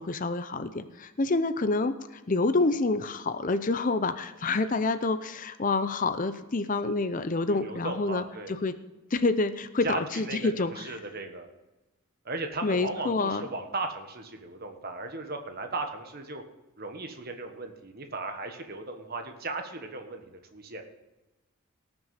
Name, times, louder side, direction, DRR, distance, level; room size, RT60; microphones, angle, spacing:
voice 1, 0.0-8.7 9.1-11.0 12.6-13.5, left 3 dB, 40° left, 11 dB, 0.6 m, -28 dB
voice 2, 7.5-8.6 9.8-11.5 12.2-16.4 16.8-20.8, right 3 dB, 45° right, 5 dB, 1.4 m, -36 dB
18.0 x 6.2 x 5.7 m, 1.1 s
head